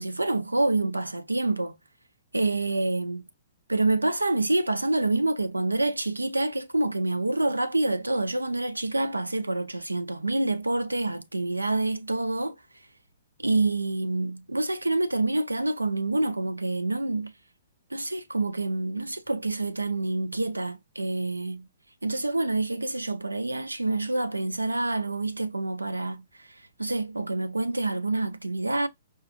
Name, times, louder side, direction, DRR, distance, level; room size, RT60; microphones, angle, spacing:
voice 1, 0.0-1.8 2.3-3.3 3.7-12.6 13.4-17.3 17.9-21.7 22.0-26.3 26.8-28.9, right 2 dB, 85° right, 0.4 m, -27 dB
4.9 x 2.4 x 2.5 m
figure-of-eight pair, 115°, 0 cm